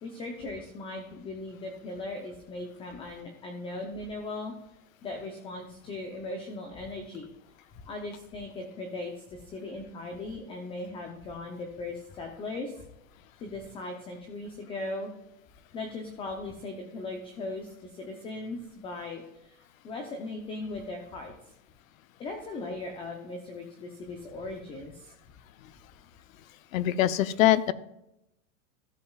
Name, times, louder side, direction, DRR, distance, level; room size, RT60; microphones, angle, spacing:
voice 1, 0.0-4.5 5.0-7.3 7.8-12.9 13.4-15.1 15.7-21.3 22.2-25.1, left 2 dB, 15° left, 4 dB, 0.6 m, -38 dB
voice 2, 26.7-27.7, left 13 dB, 70° left, 16 dB, 0.8 m, -23 dB
13.5 x 7.7 x 2.4 m, 0.84 s
supercardioid pair, 155°, 43 cm